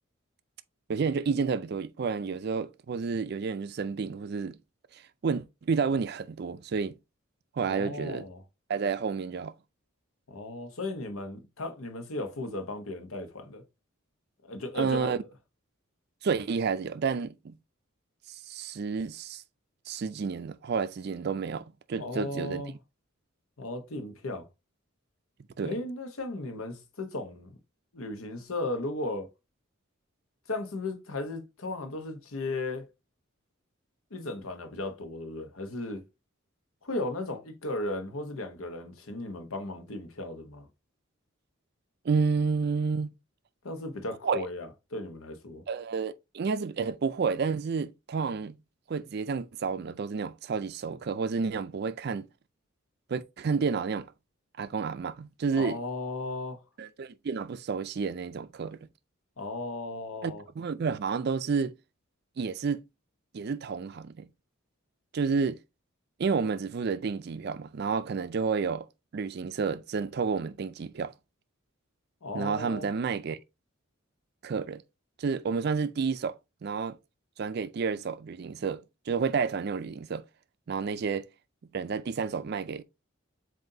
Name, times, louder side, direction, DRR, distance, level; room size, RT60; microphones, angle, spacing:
voice 1, 0.9-4.6 5.2-6.9 7.6-8.2 8.7-9.5 14.7-15.2 16.2-17.6 18.3-19.4 19.9-22.6 25.6-25.8 42.0-43.1 44.2-44.4 45.7-48.6 48.9-52.3 53.1-54.1 54.6-55.8 56.8-58.8 60.2-61.7 62.4-62.8 63.3-64.3 65.1-65.6 66.2-68.9 69.1-71.1 72.3-73.4 74.4-74.8 75.2-76.3 76.6-77.0 77.4-78.8 79.1-80.2 80.7-81.3 81.7-82.8, right 5 dB, 50° right, 0.4 m, -30 dB
voice 2, 7.6-8.4 10.3-13.6 14.4-15.2 22.0-22.7 23.6-24.5 25.6-27.6 27.9-29.3 30.5-32.9 34.1-36.0 36.8-40.7 43.6-45.6 55.5-56.6 59.4-60.4 72.2-72.9, left 2 dB, 85° left, 1.0 m, -36 dB
7.5 x 2.7 x 2.7 m
head